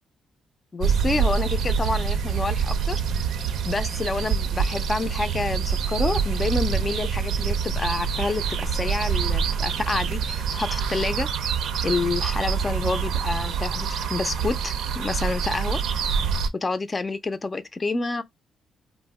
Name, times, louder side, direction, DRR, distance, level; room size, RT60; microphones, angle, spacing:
voice 1, 0.7-3.0 3.6-11.3 11.8-15.8 16.6-18.2, left 3 dB, 30° left, 0.4 m, -28 dB
sound 1, 0.8-16.5, right 6 dB, 80° right, 0.4 m, -26 dB
2.5 x 2.1 x 3.4 m
cardioid pair, 90°, 0 cm